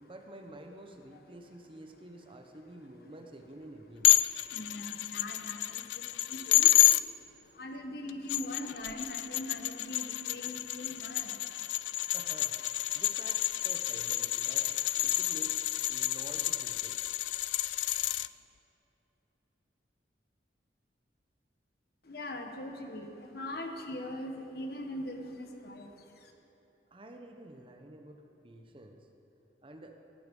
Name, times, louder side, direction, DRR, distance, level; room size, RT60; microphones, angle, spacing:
voice 1, 0.0-4.1 12.1-12.6 12.9-14.8 15.0-17.0 26.9-29.1 29.6-30.0, right 1 dB, 30° right, 4 dB, 0.9 m, -49 dB
sound 1, 4.0-7.0 8.1-18.3, left 15 dB, 80° left, 0.3 m, -29 dB
voice 2, 4.5-5.8 6.3-6.7 7.6-11.3 22.1-23.1 23.3-25.9, left 1 dB, 55° left, 4 dB, 1.3 m, -41 dB
17.5 x 9.6 x 5.4 m, 2.9 s
head